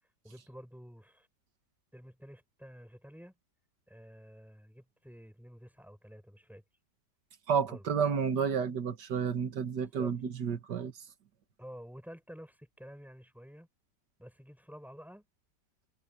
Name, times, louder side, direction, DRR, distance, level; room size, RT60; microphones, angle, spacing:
voice 1, 0.2-1.3 1.9-3.3 3.9-6.6 7.7-7.8 9.8-10.2 11.6-13.7 14.2-15.3, equal, ahead, 7.9 m, -50 dB
voice 2, 7.5-10.9, right 6 dB, 85° right, 2.1 m, -31 dB
omnidirectional pair, 1.8 m